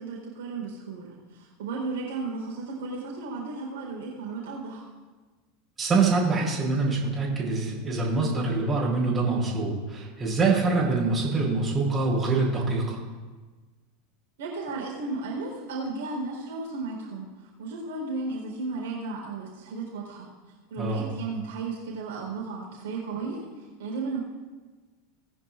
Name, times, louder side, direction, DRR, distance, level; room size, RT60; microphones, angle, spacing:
voice 1, 0.0-4.8 14.4-17.3 17.6-20.3 20.7-23.4 23.8-24.2, right 3 dB, 60° right, -3 dB, 4.1 m, -34 dB
voice 2, 5.8-13.0 20.8-21.0, right 3 dB, 20° right, -4 dB, 4.3 m, -25 dB
20.0 x 10.0 x 2.6 m, 1.3 s
figure-of-eight pair, 80°, 0 cm